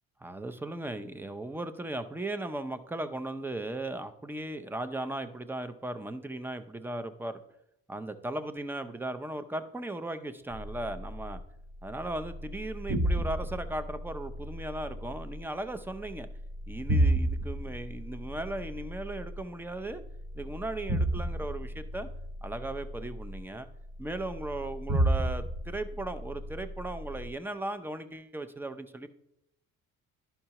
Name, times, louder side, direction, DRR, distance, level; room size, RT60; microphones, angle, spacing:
voice 1, 0.2-7.4 7.9-11.4 11.8-16.3 16.7-20.0 20.3-22.1 22.4-23.7 24.0-29.1, right 1 dB, 5° right, 10 dB, 0.5 m, -37 dB
sound 1, 10.5-27.3, right 1 dB, 40° right, 1.4 m, -33 dB
10.5 x 5.6 x 2.9 m, 0.80 s
cardioid pair, 90°, 33 cm